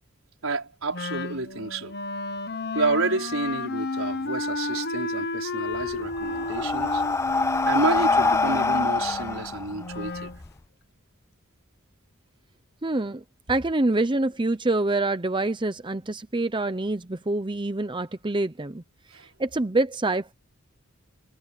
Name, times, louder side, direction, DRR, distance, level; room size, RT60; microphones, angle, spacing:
voice 1, 0.4-2.0 2.7-7.0 7.6-10.3 19.1-19.3, right 3 dB, 75° right, 5.1 m, -29 dB
Wind instrument woodwind instrument, 0.9-10.4, left 3 dB, 50° left, 1.2 m, -32 dB
Breathing, 5.7-10.5, left 3 dB, 15° left, 0.3 m, -25 dB
voice 2, 12.8-18.8 19.1-20.3, right 2 dB, 25° right, 0.7 m, -26 dB
head